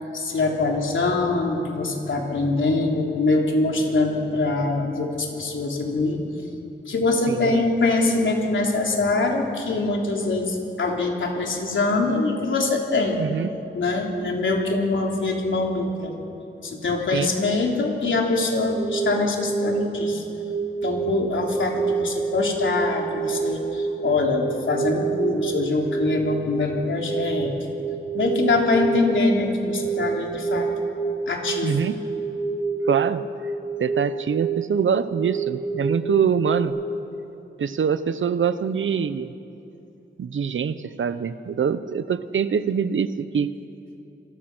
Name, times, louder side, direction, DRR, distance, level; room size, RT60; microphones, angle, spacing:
voice 1, 0.0-6.2 6.9-13.2 13.7-16.2 16.6-20.2 20.8-27.5 28.1-30.7 31.3-31.9, left 3 dB, 80° left, 0 dB, 3.5 m, -23 dB
voice 2, 7.3-7.6 13.2-13.5 17.1-17.3 31.6-32.0 32.8-33.2 33.8-36.7 37.6-39.3 40.2-43.6, right 7 dB, 85° right, 13 dB, 0.9 m, -24 dB
sound 1, 18.7-36.6, right 5 dB, 35° right, 5.4 m, -28 dB
28.0 x 23.0 x 6.2 m, 2.8 s
wide cardioid pair, 160°, 20 cm